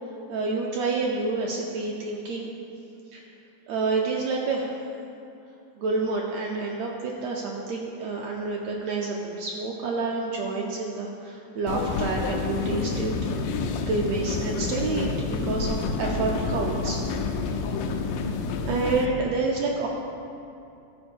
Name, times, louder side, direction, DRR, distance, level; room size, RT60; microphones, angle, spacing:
voice 1, 0.3-2.5 3.7-4.8 5.8-13.1 13.7-17.0 18.7-19.9, right 3 dB, 75° right, -1 dB, 1.6 m, -28 dB
sound 1, 11.7-19.1, left 4 dB, 90° left, 2.2 m, -28 dB
13.0 x 4.7 x 5.3 m, 2.7 s
omnidirectional pair, 3.6 m